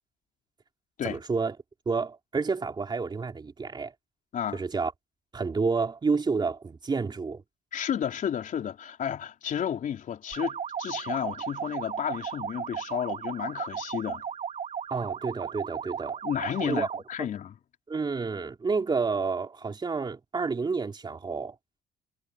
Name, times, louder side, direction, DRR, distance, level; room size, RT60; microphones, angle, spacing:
voice 1, 1.0-1.5 1.8-3.9 4.5-4.9 5.3-7.4 14.9-16.2 16.6-16.9 17.2-17.3 17.9-21.5, right 4 dB, 25° right, 3.5 m, -29 dB
voice 2, 7.7-14.2 16.2-17.5, left 9 dB, 50° left, 3.9 m, -32 dB
sound 1, 10.3-17.1, right 7 dB, 45° right, 3.6 m, -35 dB
cardioid pair, 110°, 17 cm